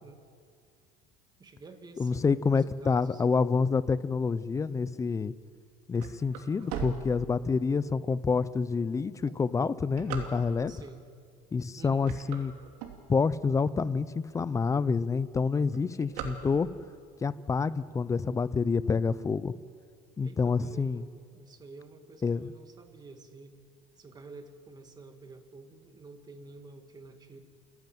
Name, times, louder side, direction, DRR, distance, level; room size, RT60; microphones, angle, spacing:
voice 1, 1.4-3.2 4.5-4.7 10.7-11.0 11.8-12.1 20.2-23.6 24.0-27.4, right 3 dB, 20° right, 7 dB, 1.9 m, -50 dB
voice 2, 2.0-5.3 5.9-10.7 11.5-12.5 13.1-16.7 17.2-19.5 20.2-21.0 22.2-22.5, left 5 dB, 15° left, 17 dB, 0.5 m, -28 dB
sound 1, 5.7-7.8 8.3-8.4 9.1-10.8 11.4-11.7 12.0-13.5 14.0-14.1 14.3-14.4 14.7-15.1 15.3-17.0, right 8 dB, 90° right, 2.7 m, -40 dB
29.0 x 11.0 x 9.2 m, 2.2 s
cardioid pair, 130°, 19 cm